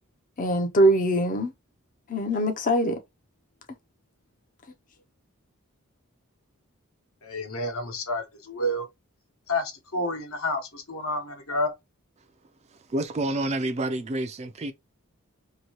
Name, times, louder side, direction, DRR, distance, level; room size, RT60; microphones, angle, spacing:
voice 1, 0.4-1.5 2.1-3.0, right 1 dB, 35° left, 0.5 m, -22 dB
voice 2, 7.2-8.9 9.5-11.7, left 1 dB, 70° left, 1.0 m, -29 dB
voice 3, 12.7-14.7, right 1 dB, 30° right, 0.3 m, -29 dB
2.8 x 2.7 x 2.9 m
head